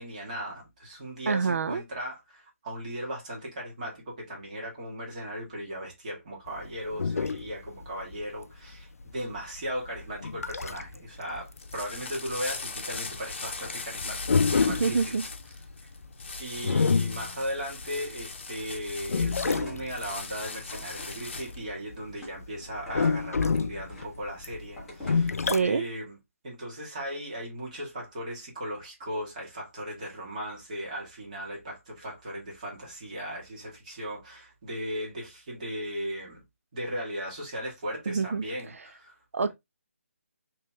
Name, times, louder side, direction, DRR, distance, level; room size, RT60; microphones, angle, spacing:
voice 1, 0.0-15.1 16.4-26.2 26.4-36.4 36.7-39.2, equal, 30° right, 1.7 m, -37 dB
voice 2, 1.3-1.8 14.7-15.2 25.5-25.8 38.1-38.4 39.3-39.5, right 5 dB, 70° right, 0.4 m, -26 dB
sound 1, 6.5-11.0 11.3-18.2 18.6-22.1 22.4-25.6, left 5 dB, 85° left, 0.4 m, -28 dB
sound 2, 11.4-21.6, left 4 dB, 50° left, 0.8 m, -39 dB
sound 3, 19.5-25.4, left 1 dB, ahead, 0.9 m, -46 dB
3.2 x 3.0 x 3.3 m
hypercardioid pair, 170°, 8 cm